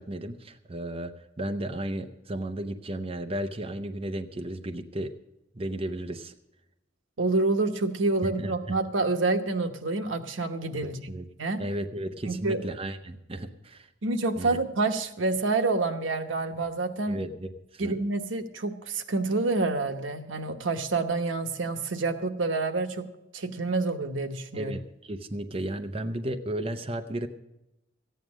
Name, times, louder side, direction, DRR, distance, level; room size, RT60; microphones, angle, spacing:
voice 1, 0.0-5.1 5.5-6.3 8.4-8.7 10.8-11.2 11.6-13.9 14.4-14.6 17.1-18.0 24.5-27.3, right 1 dB, 30° right, 6 dB, 0.7 m, -34 dB
voice 2, 7.2-11.1 11.4-11.6 12.3-12.6 14.0-17.3 17.8-23.1 23.3-24.8, right 3 dB, 90° right, 7 dB, 1.1 m, -28 dB
14.5 x 9.3 x 6.2 m, 0.90 s
head